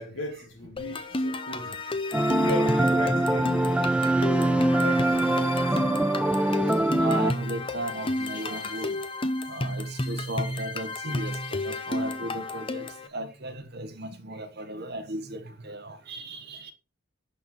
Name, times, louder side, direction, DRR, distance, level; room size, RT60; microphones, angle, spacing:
voice 1, 0.0-1.8 2.3-3.6 4.2-5.6, left 2 dB, 65° left, 1.7 m, -37 dB
sound 1, 0.8-13.1, left 1 dB, 25° left, 0.7 m, -32 dB
sound 2, 2.1-7.3, right 1 dB, 5° right, 0.3 m, -23 dB
voice 2, 7.0-8.9 9.5-11.4 11.6-12.8 13.1-16.7, right 1 dB, 50° right, 1.5 m, -36 dB
11.5 x 4.4 x 4.4 m
head